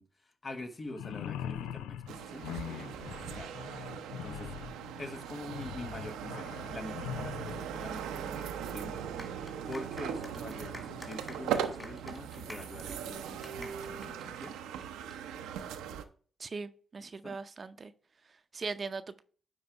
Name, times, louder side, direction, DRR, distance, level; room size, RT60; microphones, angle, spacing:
voice 1, 0.0-3.6 4.2-4.5 5.0-9.0 9.7-14.6 17.0-17.4, left 2 dB, 40° left, 1.3 m, -45 dB
sound 1, 0.9-7.7, left 10 dB, 90° left, 0.4 m, -42 dB
sound 2, 2.1-16.0, right 8 dB, 90° right, 0.6 m, -39 dB
sound 3, 9.2-15.1, left 1 dB, 15° left, 2.4 m, -50 dB
voice 2, 16.4-17.9 18.2-19.2, right 4 dB, 50° right, 0.6 m, -40 dB
9.5 x 4.0 x 4.7 m
supercardioid pair, 45°, 0 cm